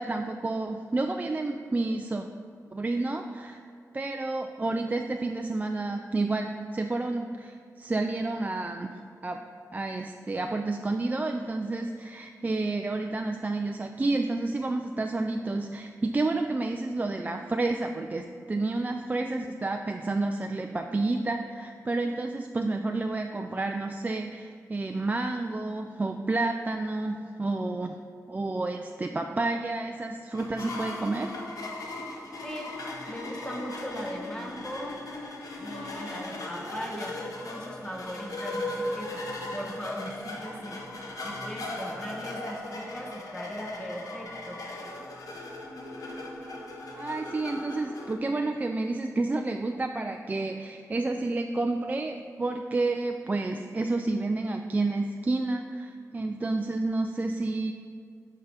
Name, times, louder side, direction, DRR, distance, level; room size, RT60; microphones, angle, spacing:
voice 1, 0.0-2.2 2.7-3.6 3.9-9.4 9.7-28.0 28.3-31.3 47.0-57.7, right 2 dB, 25° right, 4 dB, 0.3 m, -30 dB
sound 1, 30.3-48.1, left 2 dB, 70° left, 1.0 m, -38 dB
voice 2, 32.4-32.7 33.1-35.0 35.6-39.2 39.5-44.6, equal, 15° left, -1 dB, 1.2 m, -39 dB
9.5 x 5.5 x 3.4 m, 2.3 s
wide cardioid pair, 95°, 6 cm